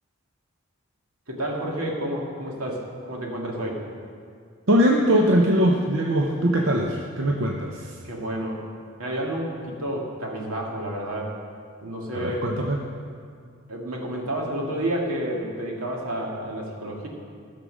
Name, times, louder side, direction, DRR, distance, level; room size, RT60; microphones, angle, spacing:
voice 1, 1.3-3.9 8.0-8.6 9.0-11.4 11.8-12.5 13.7-17.1, right 1 dB, 90° right, -1 dB, 2.1 m, -30 dB
voice 2, 4.7-8.0 12.1-12.8, equal, 65° right, 0 dB, 0.8 m, -21 dB
15.0 x 6.7 x 6.3 m, 2.2 s
head